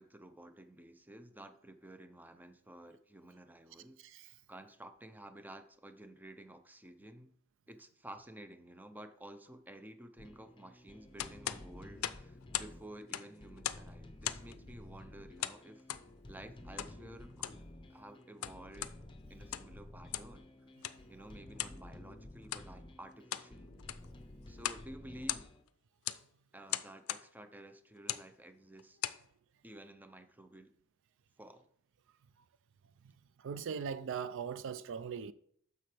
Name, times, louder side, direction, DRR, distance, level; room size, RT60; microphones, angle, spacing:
voice 1, 0.0-4.0 4.5-7.3 7.7-15.8 16.3-19.0 19.3-20.5 21.1-23.7 24.5-25.5 26.5-29.0 29.6-30.7 31.4-31.7, right 1 dB, 10° right, 0.6 m, -52 dB
voice 2, 4.0-4.3 33.4-35.3, right 6 dB, 65° right, 0.4 m, -40 dB
sound 1, 10.2-25.6, left 1 dB, 25° left, 0.8 m, -53 dB
sound 2, 11.2-12.8 13.0-13.9 14.2-14.6 15.4-16.1 16.8-17.0 17.3-17.6 18.2-19.0 19.4-19.8 20.1-20.4 20.8-21.0 21.6-21.8 22.4-22.7 23.1-23.5 23.8-24.1 24.6-24.9 25.1-25.7 26.1-26.2 26.7-27.3 28.0-28.3 28.8-29.2, left 12 dB, 80° left, 0.5 m, -39 dB
10.0 x 6.8 x 3.3 m
head